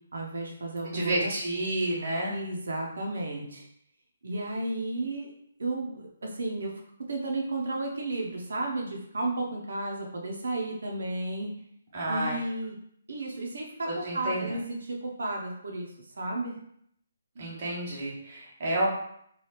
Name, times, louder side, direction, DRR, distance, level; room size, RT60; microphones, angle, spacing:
voice 1, 0.1-1.3 2.3-3.6 4.2-5.3 5.6-6.7 7.1-11.5 12.1-12.8 13.1-16.6, right 2 dB, 70° right, 0 dB, 0.6 m, -33 dB
voice 2, 0.9-2.3 11.9-12.4 13.8-14.6 17.4-18.9, right 1 dB, 30° right, -4 dB, 0.7 m, -30 dB
2.9 x 2.3 x 3.2 m, 0.70 s
hypercardioid pair, 180°, 0 cm